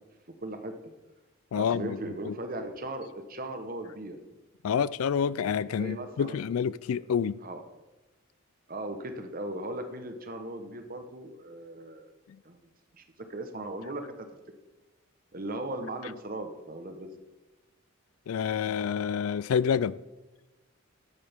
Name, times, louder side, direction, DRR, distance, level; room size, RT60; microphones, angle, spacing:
voice 1, 0.4-0.7 1.5-4.2 5.6-6.5 7.4-7.6 8.7-12.1 12.4-12.6 12.9-13.0 13.3-14.3 15.3-17.1, right 1 dB, 40° right, 1.1 m, -38 dB
voice 2, 1.5-2.0 2.3-2.4 4.6-7.4 18.3-19.9, left 7 dB, 75° left, 0.3 m, -28 dB
12.5 x 9.5 x 3.6 m
head